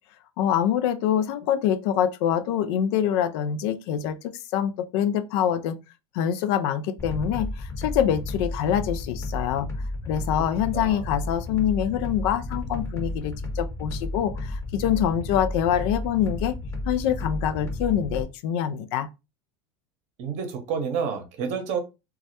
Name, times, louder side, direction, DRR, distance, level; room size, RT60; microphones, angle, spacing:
voice 1, 0.4-5.8 6.1-9.7 10.1-16.5 16.9-19.1, left 9 dB, 65° left, 0.4 m, -25 dB
sound 1, 7.0-18.2, left 2 dB, 20° left, 0.8 m, -32 dB
voice 2, 20.2-21.8, right 6 dB, 55° right, 0.7 m, -29 dB
2.2 x 2.1 x 2.7 m
hypercardioid pair, 95°, 15 cm